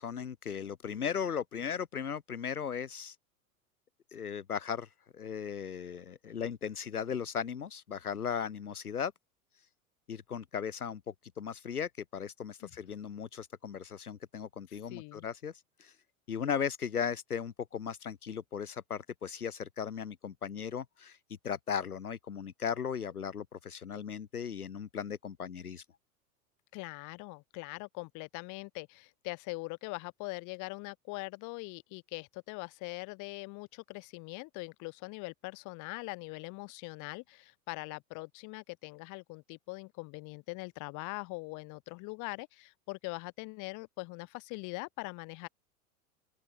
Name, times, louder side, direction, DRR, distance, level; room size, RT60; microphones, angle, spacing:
voice 1, 0.0-3.2 4.1-9.1 10.1-11.0 11.4-15.5 15.8-15.9 16.3-21.2 21.4-25.8, left 7 dB, 80° left, 1.2 m, -37 dB
voice 2, 14.7-15.3 26.7-45.5, left 27 dB, 40° left, 2.8 m, -42 dB
open air
figure-of-eight pair, 90°, 44 cm